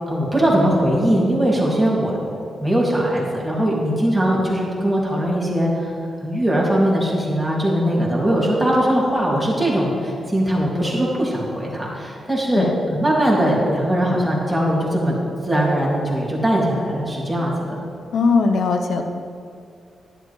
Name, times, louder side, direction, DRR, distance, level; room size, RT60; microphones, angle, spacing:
voice 1, 0.1-2.3 2.6-5.9 6.2-15.2 15.4-17.8, right 1 dB, 5° right, -5 dB, 2.4 m, -20 dB
voice 2, 18.1-19.0, left 4 dB, 70° left, 6 dB, 0.8 m, -19 dB
11.0 x 10.5 x 3.2 m, 2.3 s
cardioid pair, 115°, 0 cm